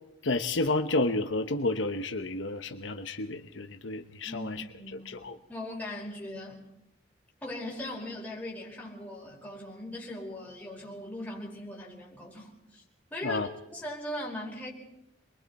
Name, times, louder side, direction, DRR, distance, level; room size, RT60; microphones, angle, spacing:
voice 1, 0.2-4.6 5.1-5.4 13.2-13.5, left 2 dB, 70° left, 7 dB, 1.0 m, -30 dB
voice 2, 4.2-5.2 5.5-6.6 7.4-12.8 13.1-14.7, left 1 dB, 10° left, -3 dB, 4.9 m, -39 dB
27.5 x 22.5 x 4.2 m, 0.86 s
head